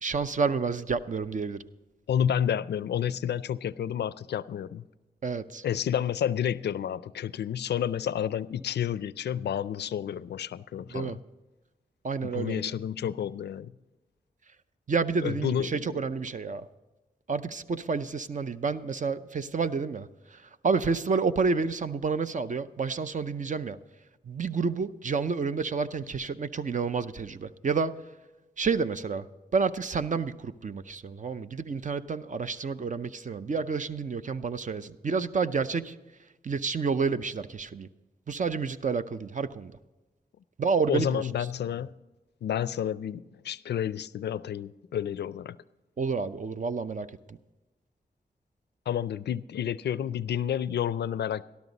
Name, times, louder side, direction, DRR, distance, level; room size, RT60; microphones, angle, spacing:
voice 1, 0.0-1.6 5.2-5.6 10.9-11.2 12.0-12.7 14.9-16.7 17.3-23.8 24.2-28.0 28.6-29.3 29.5-35.9 36.4-37.9 38.3-39.7 40.6-41.3 46.0-47.4, right 5 dB, 50° right, 0.6 m, -29 dB
voice 2, 2.1-4.8 5.6-11.2 12.2-13.7 15.2-16.0 40.9-41.9 42.4-45.6 48.9-51.4, left 9 dB, 85° left, 0.4 m, -30 dB
12.5 x 12.5 x 4.0 m
cardioid pair, 70°, 17 cm